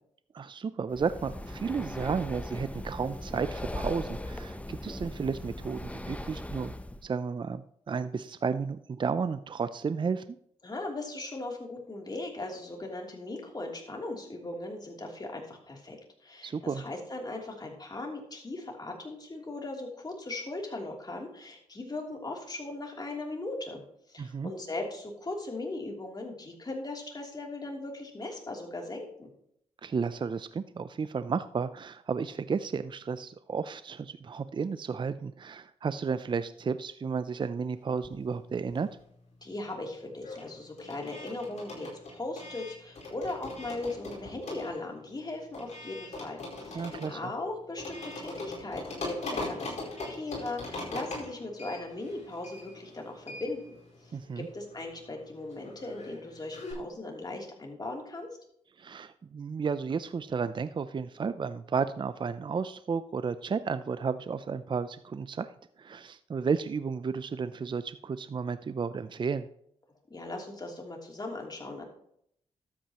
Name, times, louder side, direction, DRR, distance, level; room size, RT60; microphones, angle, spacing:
voice 1, 0.3-6.7 7.0-10.2 16.4-16.8 24.2-24.5 29.8-38.9 46.7-47.2 54.1-54.5 58.8-65.5 65.8-69.5, right 5 dB, 40° right, 13 dB, 0.5 m, -32 dB
Breathing, 0.9-7.0, left 1 dB, 10° left, 0.7 m, -39 dB
voice 2, 10.6-16.0 16.2-23.8 24.1-29.3 39.4-53.8 54.0-58.3 70.1-71.8, left 2 dB, 30° left, 0 dB, 3.0 m, -38 dB
sound 1, 37.9-39.2 39.4-56.7, left 2 dB, 60° left, 4.7 m, -42 dB
12.5 x 8.7 x 3.0 m, 0.70 s
cardioid pair, 55°, 13 cm